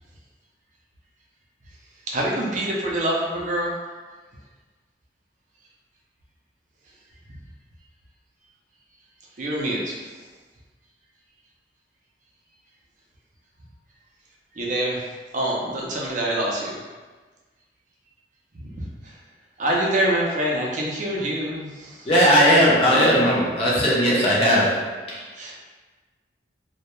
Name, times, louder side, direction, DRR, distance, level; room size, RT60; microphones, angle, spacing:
voice 1, 2.1-3.7 9.4-10.0 14.6-15.0 15.3-16.8 18.7-18.9 19.6-22.1 25.4-25.6, right 1 dB, 45° right, -3 dB, 0.4 m, -25 dB
voice 2, 22.1-25.2, equal, 35° left, -5 dB, 0.5 m, -18 dB
2.1 x 2.0 x 2.9 m, 1.3 s
head